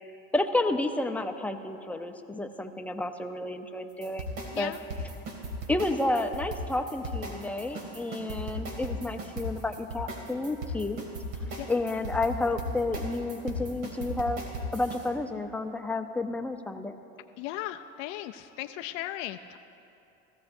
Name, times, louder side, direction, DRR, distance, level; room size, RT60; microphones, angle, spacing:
voice 1, 0.3-4.7 5.7-11.0 11.7-14.4 14.7-16.9, left 2 dB, 5° left, 5 dB, 0.6 m, -31 dB
sound 1, 4.0-15.1, equal, 70° right, 2.4 m, -36 dB
voice 2, 17.4-19.6, left 14 dB, 65° left, 7 dB, 0.5 m, -37 dB
17.5 x 14.5 x 2.6 m, 2.8 s
supercardioid pair, 110°, 29 cm